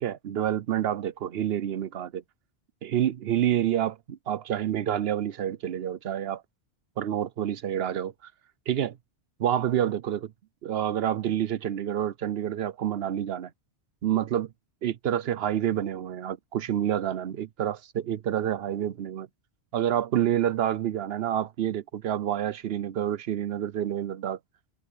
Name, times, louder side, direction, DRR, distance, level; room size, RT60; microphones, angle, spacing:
voice 1, 0.0-2.2 2.8-6.4 7.0-8.3 8.7-9.0 9.4-10.3 10.6-13.5 14.0-14.5 14.8-19.3 19.7-24.4, right 10 dB, 65° right, 0.9 m, -28 dB
omnidirectional pair, 1.1 m